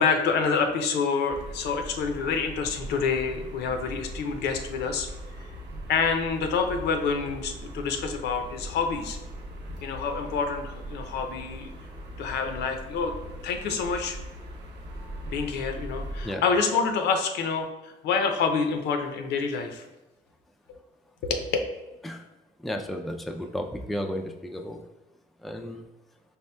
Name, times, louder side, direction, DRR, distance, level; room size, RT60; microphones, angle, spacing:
voice 1, 0.0-5.1 5.9-9.2 9.8-11.7 12.2-13.1 13.4-14.2 15.2-19.8 21.2-21.5, left 5 dB, 80° left, 5 dB, 0.5 m, -27 dB
sound 1, 1.3-16.3, right 1 dB, 85° right, 0.7 m, -40 dB
voice 2, 22.6-24.8 25.4-25.8, equal, ahead, 4 dB, 0.3 m, -33 dB
4.3 x 3.3 x 2.2 m, 0.99 s
cardioid pair, 85°, 17 cm